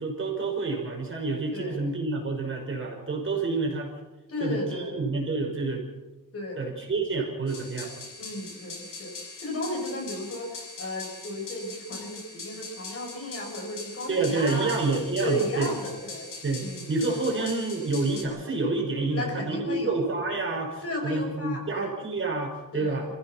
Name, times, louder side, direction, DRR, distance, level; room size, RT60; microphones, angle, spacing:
voice 1, 0.0-3.9 4.4-5.8 6.6-7.9 14.1-15.7 16.4-23.1, right 3 dB, 40° right, 1 dB, 5.7 m, -28 dB
voice 2, 4.3-5.0 6.3-6.6 8.2-9.1 9.4-14.7 15.2-16.3 16.6-16.9 19.1-19.9 20.8-21.9 22.7-23.0, left 1 dB, 45° left, 1 dB, 6.6 m, -34 dB
sound 1, 7.5-18.2, left 3 dB, 65° left, 6.3 m, -42 dB
29.0 x 16.0 x 6.0 m, 1.1 s
wide cardioid pair, 160°, 33 cm